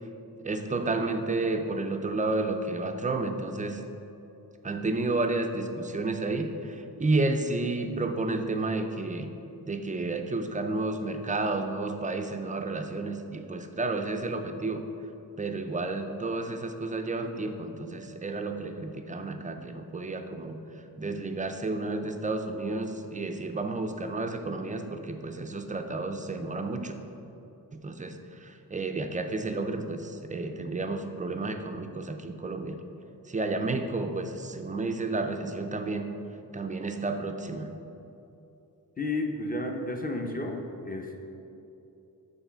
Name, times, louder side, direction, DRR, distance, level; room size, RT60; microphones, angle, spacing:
voice 1, 0.4-3.8 4.6-9.3 9.7-14.9 15.4-20.6 21.0-26.9 27.7-32.8 33.3-36.1 36.5-37.7, right 2 dB, 20° right, 6 dB, 0.4 m, -31 dB
voice 2, 39.0-41.2, left 2 dB, 25° left, 2 dB, 0.6 m, -32 dB
8.0 x 4.0 x 5.7 m, 2.9 s
wide cardioid pair, 145°, 37 cm